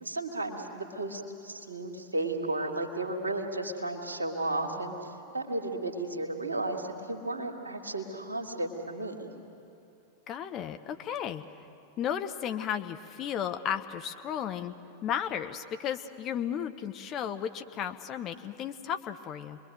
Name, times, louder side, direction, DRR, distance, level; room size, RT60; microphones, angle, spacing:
voice 1, 0.0-9.3, right 2 dB, 75° right, 3 dB, 2.4 m, -34 dB
voice 2, 10.3-11.4 12.0-14.7 15.0-19.6, left 9 dB, 35° left, 8 dB, 1.1 m, -34 dB
28.0 x 22.0 x 7.8 m, 2.7 s
figure-of-eight pair, 90°, 0 cm